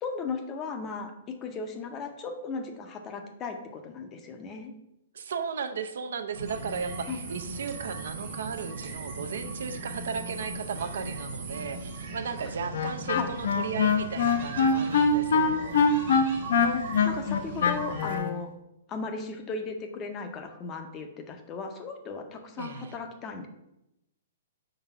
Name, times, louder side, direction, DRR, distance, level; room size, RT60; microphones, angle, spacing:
voice 1, 0.0-4.7 7.1-7.2 13.1-13.3 16.6-18.5 18.9-23.5, left 4 dB, 20° left, 5 dB, 0.6 m, -36 dB
voice 2, 5.1-15.8 22.6-22.9, right 6 dB, 75° right, 9 dB, 0.5 m, -35 dB
sound 1, 6.3-18.2, right 3 dB, 40° right, 1.1 m, -39 dB
Wind instrument woodwind instrument, 12.7-18.3, left 5 dB, 75° left, 0.6 m, -23 dB
4.9 x 4.0 x 5.4 m, 0.87 s
hypercardioid pair, 165°, 0 cm